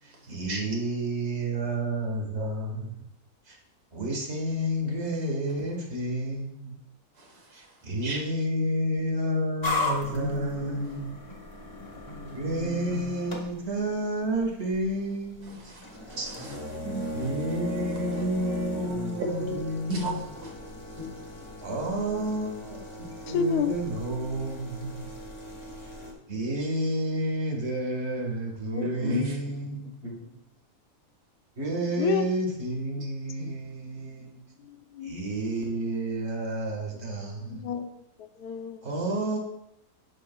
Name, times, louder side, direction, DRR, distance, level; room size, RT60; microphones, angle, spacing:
voice 1, 0.0-3.0 3.5-3.6 3.9-6.8 7.5-11.2 12.3-15.7 17.1-20.4 21.6-25.1 26.3-30.0 31.6-34.4 35.0-37.7 38.8-39.4, right 1 dB, 45° right, 0 dB, 1.9 m, -30 dB
sound 1, 9.6-26.1, left 1 dB, 20° left, 1.1 m, -37 dB
voice 2, 10.1-11.0 12.1-13.0 15.7-17.2 19.2-20.5 21.0-21.1 28.8-30.2 33.0-33.1 33.4-33.5, equal, 80° right, 0 dB, 2.1 m, -34 dB
voice 3, 23.3-23.7 28.7-28.9 32.0-32.3 34.6-35.1 37.5-37.9 38.2-38.9, left 7 dB, 90° left, 9 dB, 1.2 m, -29 dB
11.0 x 6.9 x 2.3 m, 0.82 s
omnidirectional pair, 1.6 m